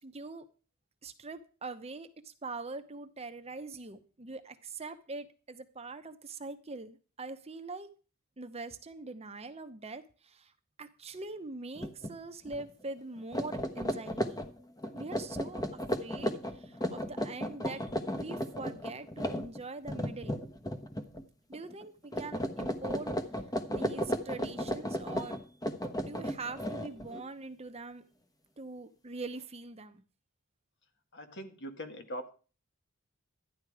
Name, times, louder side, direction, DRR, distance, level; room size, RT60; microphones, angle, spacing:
voice 1, 0.0-0.5 1.0-7.9 8.4-10.5 10.8-14.4 14.9-17.8 18.1-20.4 21.5-23.1 23.7-25.4 26.0-28.0 28.6-30.0, right 3 dB, 30° right, 9 dB, 0.9 m, -43 dB
sound 1, 11.8-12.1 12.5-12.6 13.2-21.2 21.5-21.8 22.1-27.2, equal, 15° left, 1.2 m, -35 dB
voice 2, 31.1-32.3, equal, 55° left, 7 dB, 1.9 m, -42 dB
13.5 x 10.5 x 4.9 m, 0.37 s
head